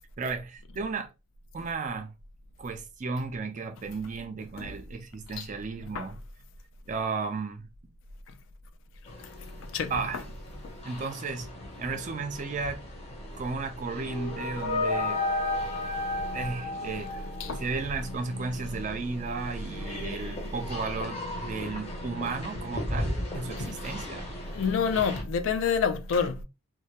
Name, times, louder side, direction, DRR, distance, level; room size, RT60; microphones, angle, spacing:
voice 1, 0.2-1.1 1.5-2.1 2.6-6.1 6.9-7.7 9.9-10.2 10.8-11.5 11.8-12.8 13.3-15.2 16.3-17.1 17.6-24.3, right 4 dB, 35° right, 0.4 m, -34 dB
sound 1, 9.0-25.2, left 1 dB, 30° left, 0.6 m, -39 dB
voice 2, 9.6-10.2 10.6-10.7 17.4-17.7 23.7-23.9 24.5-26.4, left 6 dB, 65° left, 0.3 m, -28 dB
sound 2, 13.9-17.8, left 2 dB, 90° left, 1.1 m, -31 dB
2.2 x 2.1 x 2.8 m
head